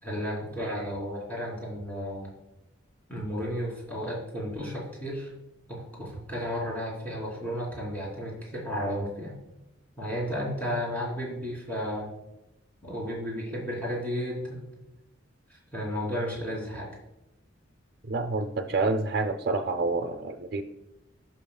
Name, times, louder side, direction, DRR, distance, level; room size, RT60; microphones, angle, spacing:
voice 1, 0.0-2.3 3.1-5.3 5.7-9.4 10.0-12.1 12.8-14.7 15.5-16.9, equal, 10° left, -4 dB, 3.2 m, -33 dB
voice 2, 18.0-20.6, right 3 dB, 55° right, 4 dB, 0.7 m, -28 dB
15.5 x 5.7 x 2.3 m, 0.92 s
head